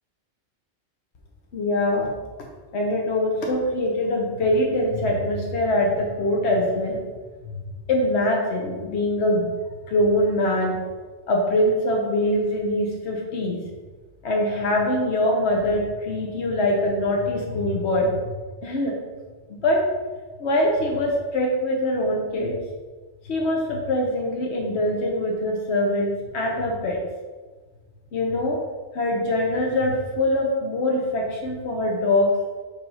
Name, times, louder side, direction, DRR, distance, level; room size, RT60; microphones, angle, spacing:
voice 1, 1.5-2.1 2.7-7.0 7.4-7.6 7.9-9.5 9.9-10.7 11.3-13.6 14.2-18.9 19.5-19.8 20.4-22.5 23.2-27.0 28.1-28.6 28.9-32.3, left 1 dB, 65° left, 0 dB, 1.2 m, -23 dB
7.2 x 3.5 x 5.5 m, 1.4 s
omnidirectional pair, 1.2 m